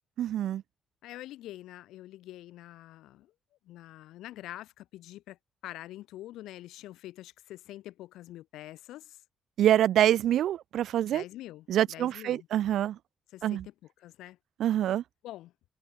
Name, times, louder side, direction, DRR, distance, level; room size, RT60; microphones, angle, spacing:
voice 1, 0.2-0.6 9.6-11.2 11.7-13.0 13.4-13.7 14.6-15.0, right 11 dB, 75° right, 1.9 m, -25 dB
voice 2, 1.0-3.3 3.7-5.4 5.6-9.2 11.1-12.5 13.3-13.7 14.0-14.4 15.2-15.5, left 15 dB, 90° left, 5.4 m, -45 dB
cardioid pair, 90°, 0 cm